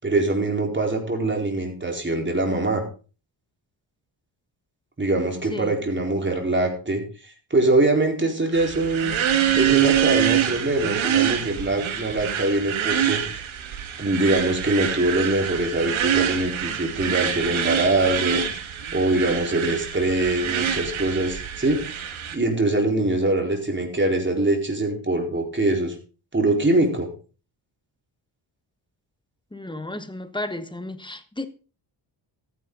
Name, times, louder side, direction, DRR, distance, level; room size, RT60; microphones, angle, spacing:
voice 1, 0.0-2.8 5.0-7.0 7.5-9.1 9.6-13.4 14.0-18.4 18.9-25.9 26.3-27.1, right 2 dB, 25° right, 4.4 m, -23 dB
sound 1, 8.5-22.4, right 10 dB, 90° right, 2.1 m, -25 dB
voice 2, 29.5-31.5, left 1 dB, 10° left, 1.5 m, -33 dB
14.0 x 10.5 x 4.0 m
cardioid pair, 95°, 46 cm